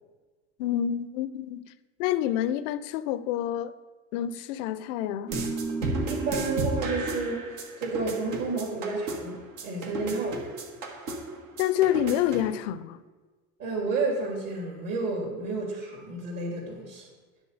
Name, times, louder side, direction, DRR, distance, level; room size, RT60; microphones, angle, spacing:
voice 1, 0.6-1.7 2.0-3.7 4.1-5.3 11.6-13.0, left 11 dB, 65° left, 0.6 m, -27 dB
sound 1, 5.3-12.5, right 2 dB, 70° right, 1.6 m, -33 dB
voice 2, 6.1-7.5 7.8-10.4 13.6-17.1, right 3 dB, 50° right, 2.6 m, -31 dB
9.7 x 4.0 x 6.4 m
hypercardioid pair, 80°, 41 cm